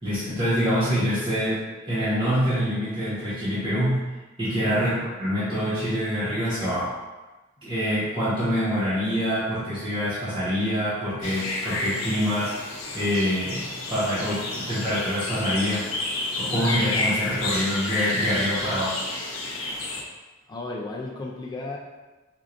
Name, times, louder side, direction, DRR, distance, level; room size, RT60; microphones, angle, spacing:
voice 1, 0.0-1.6 1.9-4.0 4.4-6.9 7.6-12.5 12.9-13.6 13.9-15.8 16.4-18.9, equal, 25° right, -13 dB, 1.1 m, -25 dB
voice 2, 4.8-5.1 20.5-21.8, left 2 dB, 20° left, -2 dB, 0.3 m, -34 dB
sound 1, 11.2-20.0, left 2 dB, 75° left, 0.6 m, -30 dB
4.4 x 2.5 x 2.5 m, 1.2 s
head